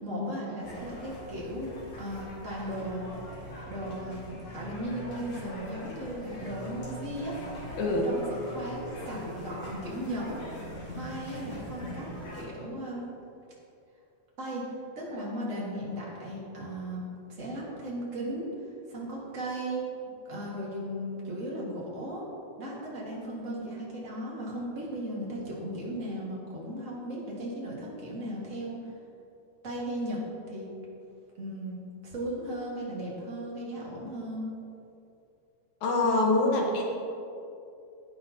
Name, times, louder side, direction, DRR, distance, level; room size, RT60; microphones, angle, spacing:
voice 1, 0.0-1.7 2.0-3.0 3.7-7.4 7.7-10.2 10.8-13.1 14.4-14.6 14.9-17.0 17.3-18.5 18.9-19.8 20.2-22.2 22.6-28.8 29.6-30.2 30.5-30.7 31.3-34.5, right 1 dB, 30° right, -5 dB, 1.6 m, -36 dB
sound 1, 0.6-12.4, equal, 60° left, 3.3 m, -42 dB
voice 2, 7.8-8.1 35.8-36.8, left 2 dB, 75° left, 0 dB, 2.5 m, -25 dB
10.5 x 9.4 x 2.8 m, 2.6 s
omnidirectional pair, 3.4 m